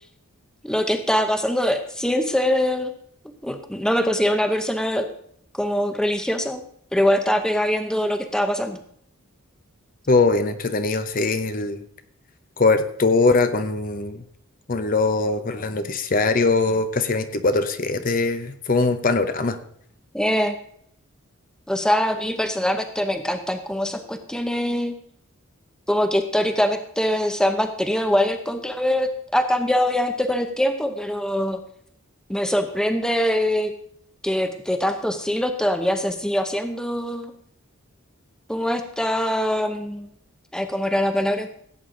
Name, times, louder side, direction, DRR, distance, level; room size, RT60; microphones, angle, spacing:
voice 1, 0.6-2.9 3.4-5.1 5.6-6.6 6.9-8.8 20.1-20.6 21.7-25.0 25.9-31.6 32.3-33.7 34.2-37.3 38.5-40.1 40.5-41.5, equal, 5° left, 7 dB, 0.7 m, -23 dB
voice 2, 10.1-11.8 12.6-14.3 14.7-19.6, left 3 dB, 40° left, 10 dB, 0.7 m, -21 dB
16.0 x 8.6 x 3.8 m, 0.66 s
head